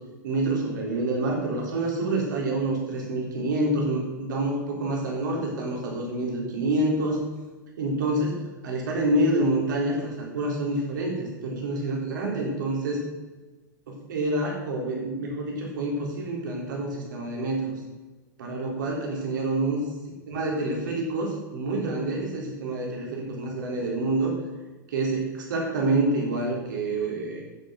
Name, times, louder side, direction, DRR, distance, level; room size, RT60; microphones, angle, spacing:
voice 1, 0.2-7.2 7.8-8.4 8.6-13.0 13.9-17.7 18.4-19.8 20.3-24.3 24.9-27.4, right 2 dB, 70° right, -1 dB, 3.9 m, -27 dB
10.5 x 7.3 x 6.5 m, 1.2 s
hypercardioid pair, 100°, 11 cm